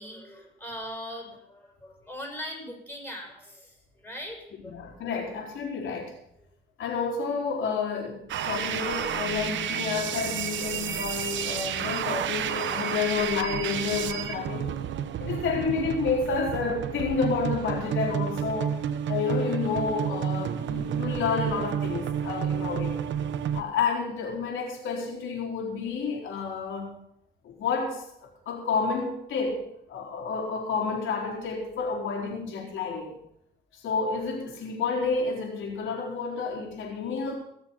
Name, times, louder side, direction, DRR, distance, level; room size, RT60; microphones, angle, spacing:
voice 1, 0.0-4.9 5.3-5.4, equal, 10° left, 1 dB, 6.4 m, -40 dB
voice 2, 4.7-6.1 6.8-14.7 15.2-18.8 19.1-23.0 23.5-27.0 27.4-29.6 29.9-33.2 33.8-37.3, left 5 dB, 80° left, 0 dB, 4.3 m, -30 dB
sound 1, 8.3-23.6, right 9 dB, 70° right, 1.0 m, -31 dB
19.5 x 7.1 x 5.8 m, 0.74 s
cardioid pair, 90°, 20 cm